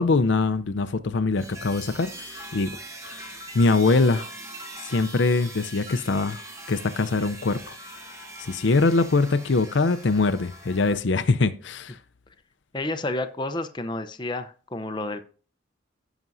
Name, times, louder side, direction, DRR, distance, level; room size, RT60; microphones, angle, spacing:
voice 1, 0.0-2.8 3.1-4.3 4.8-6.4 6.7-7.7 8.4-12.0, left 3 dB, 65° left, 0.6 m, -23 dB
sound 1, 1.4-11.0, right 1 dB, 15° right, 1.2 m, -41 dB
voice 2, 12.7-15.2, left 2 dB, 25° left, 0.6 m, -30 dB
16.5 x 6.0 x 2.6 m
head